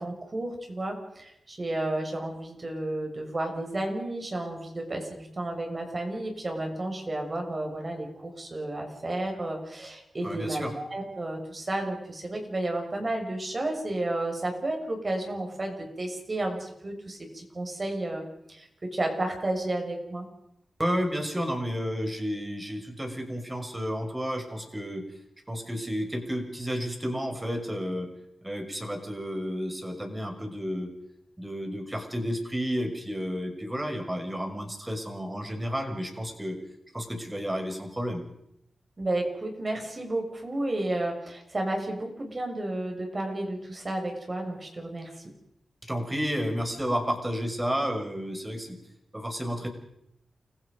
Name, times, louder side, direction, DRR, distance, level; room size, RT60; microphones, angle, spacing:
voice 1, 0.0-18.2 18.5-20.3 39.0-45.2, right 1 dB, 40° right, 3 dB, 6.6 m, -32 dB
voice 2, 10.2-10.7 20.8-25.0 25.5-28.1 28.4-30.9 31.4-36.6 36.9-38.2 45.8-48.7 49.1-49.7, equal, 15° right, 4 dB, 6.1 m, -31 dB
29.5 x 16.5 x 5.4 m, 0.77 s
cardioid pair, 45°, 0 cm